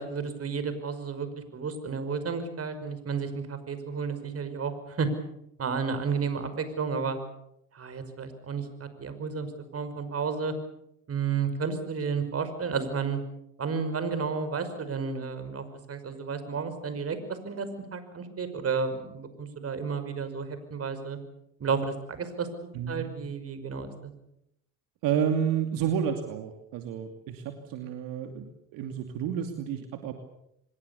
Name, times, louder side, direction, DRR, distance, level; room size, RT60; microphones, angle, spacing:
voice 1, 0.0-5.1 5.6-7.2 7.7-10.6 11.1-13.2 13.6-21.2 21.6-24.1, right 5 dB, 40° right, 10 dB, 5.5 m, -32 dB
voice 2, 22.7-23.1 25.0-30.1, right 8 dB, 70° right, 5 dB, 2.7 m, -30 dB
25.5 x 21.5 x 7.0 m, 0.79 s
supercardioid pair, 75°, 35 cm